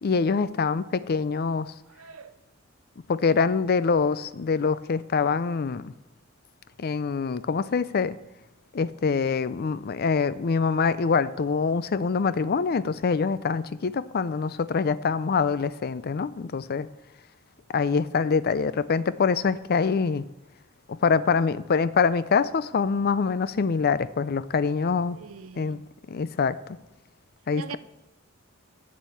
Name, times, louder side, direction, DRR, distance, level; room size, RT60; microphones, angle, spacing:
voice 1, 0.0-1.7 3.1-5.9 6.8-8.2 8.7-16.9 17.7-20.3 20.9-25.2 25.6-25.8 26.1-26.6 27.5-27.8, left 5 dB, 50° left, 0.4 m, -25 dB
voice 2, 1.9-2.3 25.1-25.8 27.6-27.8, right 6 dB, 80° right, 0.6 m, -42 dB
8.3 x 7.5 x 8.4 m
head